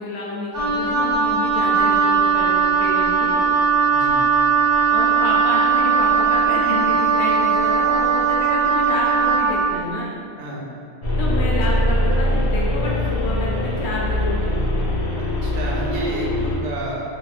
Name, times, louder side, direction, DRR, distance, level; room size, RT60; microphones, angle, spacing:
voice 1, 0.0-3.4 4.9-10.1 11.2-14.8, left 2 dB, 75° left, -4 dB, 0.9 m, -29 dB
Wind instrument woodwind instrument, 0.5-9.7, right 5 dB, 25° right, 0.5 m, -18 dB
sound 1, 11.0-16.6, left 1 dB, 50° left, 0.4 m, -22 dB
voice 2, 15.2-17.0, right 2 dB, 75° right, -3 dB, 0.9 m, -30 dB
2.6 x 2.4 x 3.1 m, 2.4 s
omnidirectional pair, 1.2 m